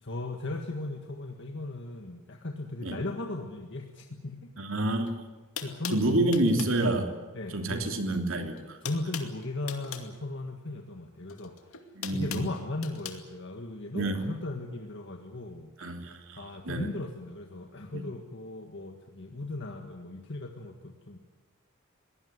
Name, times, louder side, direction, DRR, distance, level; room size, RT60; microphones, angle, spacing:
voice 1, 0.0-4.5 5.6-6.3 7.3-8.0 8.4-8.5 8.8-11.8 12.1-15.7 16.4-21.2, left 2 dB, 55° left, 3 dB, 1.8 m, -37 dB
voice 2, 4.6-5.1 5.9-7.1 7.5-8.8 11.9-12.4 13.9-14.2 15.8-16.9, right 2 dB, 65° right, 4 dB, 3.1 m, -28 dB
sound 1, 5.0-5.1 5.6-6.8 8.0-8.3 8.5-10.1 11.3-13.2, left 8 dB, 80° left, 2.3 m, -40 dB
22.5 x 18.0 x 9.6 m, 1.3 s
head